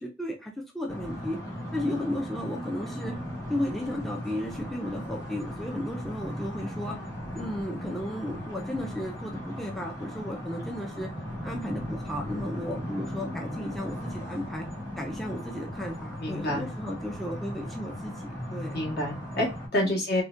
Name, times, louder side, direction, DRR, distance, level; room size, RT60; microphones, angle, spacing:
voice 1, 0.0-1.4 1.7-3.2 3.5-7.0 7.3-11.1 11.4-14.7 15.0-18.8 19.7-20.0, left 1 dB, ahead, 1 dB, 0.3 m, -34 dB
sound 1, 0.9-19.7, equal, 20° left, 1.4 m, -37 dB
voice 2, 16.2-16.6 18.7-20.2, left 1 dB, 60° left, -2 dB, 1.3 m, -28 dB
3.7 x 2.1 x 2.4 m, 0.27 s
head